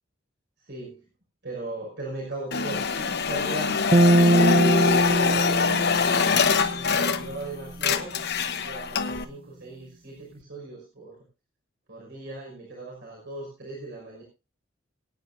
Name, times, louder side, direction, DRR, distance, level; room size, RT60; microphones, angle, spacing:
voice 1, 0.7-1.0 1.4-6.3 6.7-11.2 11.9-14.2, right 2 dB, 60° right, -2 dB, 5.7 m, -39 dB
sound 1, 2.5-7.5 7.7-9.2, left 5 dB, 55° left, 1.1 m, -24 dB
sound 2, 3.9-7.3, right 1 dB, 30° right, 0.6 m, -22 dB
23.5 x 9.9 x 2.7 m, 0.28 s
head